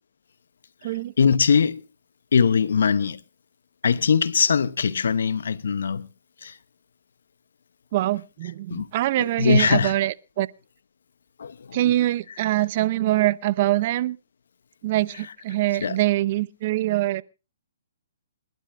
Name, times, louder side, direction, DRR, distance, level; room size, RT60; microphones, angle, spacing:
voice 1, 1.2-1.8 2.3-3.2 3.8-6.1 6.4-6.5 8.7-8.9 9.2-9.9 11.4-11.8 15.8-16.0, left 6 dB, 75° left, 0.8 m, -21 dB
voice 2, 7.9-10.5 11.7-14.2 14.8-17.2, right 15 dB, 45° right, 0.7 m, -24 dB
28.0 x 12.0 x 2.6 m
hypercardioid pair, 140°, 0 cm